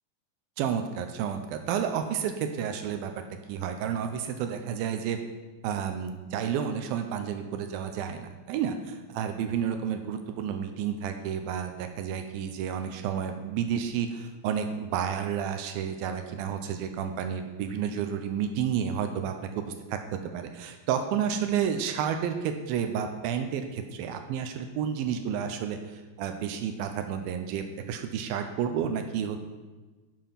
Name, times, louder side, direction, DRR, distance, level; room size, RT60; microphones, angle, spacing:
voice 1, 0.6-3.2 3.5-5.2 5.6-29.4, right 8 dB, 80° right, 6 dB, 2.4 m, -31 dB
10.0 x 7.1 x 5.6 m, 1.3 s
omnidirectional pair, 4.5 m